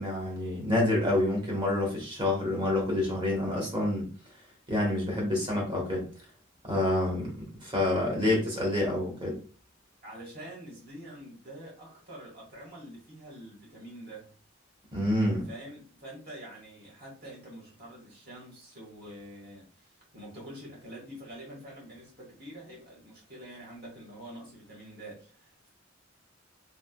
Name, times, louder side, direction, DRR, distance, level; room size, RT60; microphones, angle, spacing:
voice 1, 0.0-4.1 4.7-6.1 6.6-9.4 14.9-15.5, left 1 dB, 25° right, 1.2 m, -28 dB
voice 2, 10.0-14.3 15.5-25.7, right 1 dB, 45° right, 1.7 m, -46 dB
3.5 x 2.9 x 2.3 m
head